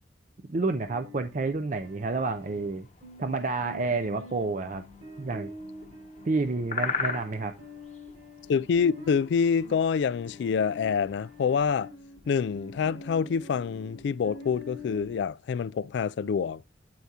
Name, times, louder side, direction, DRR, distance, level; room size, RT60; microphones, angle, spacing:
voice 1, 0.5-2.9 3.2-4.8 5.2-5.5 6.2-7.5, right 3 dB, 40° right, 0.5 m, -29 dB
sound 1, 0.8-15.2, left 2 dB, 65° right, 5.0 m, -46 dB
sound 2, 1.7-11.7, left 5 dB, 40° left, 0.9 m, -40 dB
voice 2, 8.5-11.9 12.3-16.6, left 6 dB, 70° left, 0.3 m, -26 dB
11.5 x 4.6 x 2.8 m
head